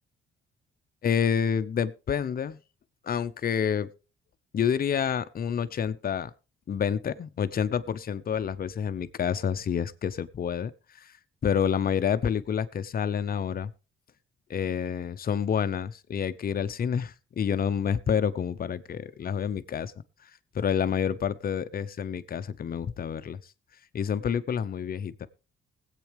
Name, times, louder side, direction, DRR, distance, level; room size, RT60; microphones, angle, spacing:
voice 1, 1.0-2.6 3.0-3.9 4.5-6.3 6.7-10.7 11.0-11.1 11.4-13.7 14.5-19.9 20.5-23.4 23.9-25.3, left 7 dB, 50° left, 14 dB, 0.8 m, -28 dB
20.0 x 8.4 x 3.4 m, 0.32 s
cardioid pair, 90°, 20 cm